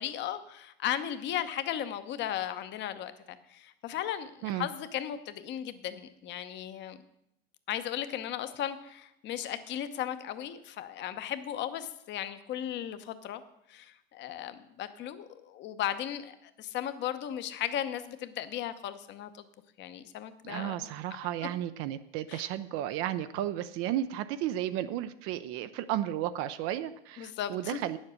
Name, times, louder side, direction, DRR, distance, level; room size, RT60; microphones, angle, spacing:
voice 1, 0.0-3.1 3.5-7.0 7.7-13.4 13.7-19.4 19.8-20.7 22.3-22.4 27.2-27.8, left 11 dB, 35° left, 11 dB, 0.9 m, -36 dB
voice 2, 20.4-28.0, right 12 dB, 45° right, 12 dB, 0.5 m, -33 dB
9.5 x 7.3 x 6.4 m, 0.80 s
supercardioid pair, 120°, 31 cm